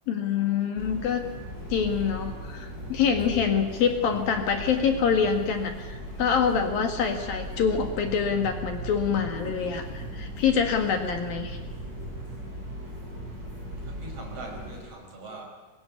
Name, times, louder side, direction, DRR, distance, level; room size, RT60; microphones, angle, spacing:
voice 1, 0.1-1.2 1.7-11.6, left 6 dB, 65° left, 5 dB, 3.5 m, -26 dB
sound 1, 0.8-14.8, right 1 dB, 20° right, 7.0 m, -38 dB
voice 2, 1.9-2.4 13.9-15.5, right 2 dB, 35° right, 1 dB, 6.3 m, -42 dB
24.5 x 22.5 x 9.9 m, 1.2 s
omnidirectional pair, 4.7 m